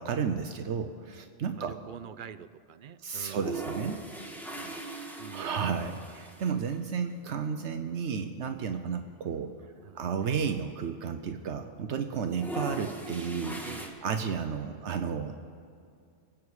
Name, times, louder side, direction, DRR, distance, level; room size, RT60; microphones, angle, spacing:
voice 1, 0.0-1.8 3.0-4.3 5.3-9.5 9.9-13.6 14.0-15.4, right 6 dB, 75° right, 7 dB, 1.0 m, -32 dB
voice 2, 1.4-3.6 4.5-4.8 5.2-5.6 9.8-10.0 13.6-14.0, right 8 dB, 60° right, 13 dB, 0.6 m, -46 dB
sound 1, 3.3-6.7 7.1-7.2 7.4-7.5 8.4-8.6 9.1-9.2 9.3-11.2 11.5-11.8 12.2-13.9, right 2 dB, ahead, 1.4 m, -40 dB
25.5 x 8.5 x 4.8 m, 2.4 s
omnidirectional pair, 1.2 m